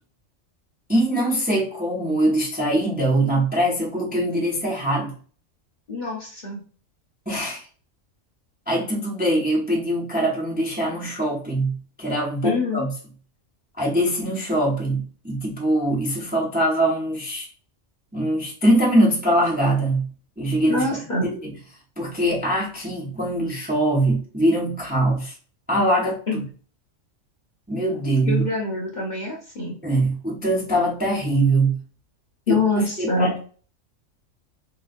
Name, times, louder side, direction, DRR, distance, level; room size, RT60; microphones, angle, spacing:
voice 1, 0.9-5.1 7.3-7.7 8.7-12.9 13.8-17.5 18.1-20.1 20.4-21.4 22.0-25.3 25.7-26.4 27.7-28.5 29.8-31.8 32.5-33.4, right 1 dB, 10° right, -3 dB, 0.7 m, -22 dB
voice 2, 5.9-6.6 12.4-12.9 20.7-21.3 26.3-26.4 28.3-29.8 32.5-33.3, left 2 dB, 40° left, -3 dB, 0.8 m, -25 dB
3.3 x 3.0 x 2.5 m, 0.41 s
omnidirectional pair, 1.4 m